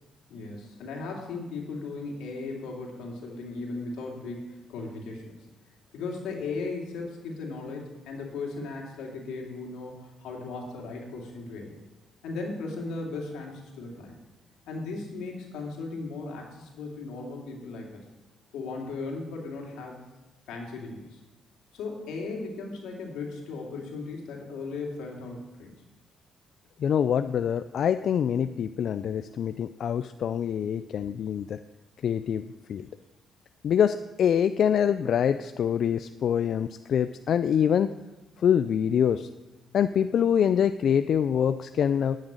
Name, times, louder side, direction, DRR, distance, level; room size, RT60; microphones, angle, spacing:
voice 1, 0.3-5.4 5.9-11.8 12.2-14.1 14.7-18.0 18.5-20.1 20.5-21.2 21.7-25.7, left 3 dB, 90° left, 0 dB, 2.5 m, -37 dB
voice 2, 26.8-31.6 32.0-32.4 32.7-32.9 33.6-37.9 38.4-39.3 39.7-42.2, left 8 dB, 65° left, 11 dB, 0.3 m, -25 dB
9.6 x 6.5 x 8.7 m, 1.1 s
cardioid pair, 90°, 0 cm